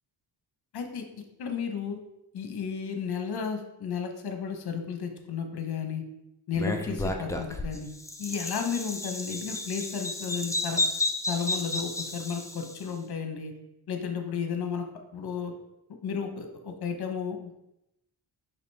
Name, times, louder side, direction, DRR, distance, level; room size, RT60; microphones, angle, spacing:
voice 1, 0.7-1.0 1.4-2.0 2.3-6.0 6.5-7.9 8.2-10.8 11.3-13.5 13.9-14.9 15.1-15.5 16.0-17.5, left 6 dB, 60° left, 5 dB, 0.8 m, -33 dB
Bird vocalization bird call bird song, 6.5-12.8, left 2 dB, 10° left, 0.3 m, -32 dB
5.0 x 2.8 x 3.3 m, 0.86 s
cardioid pair, 80°, 44 cm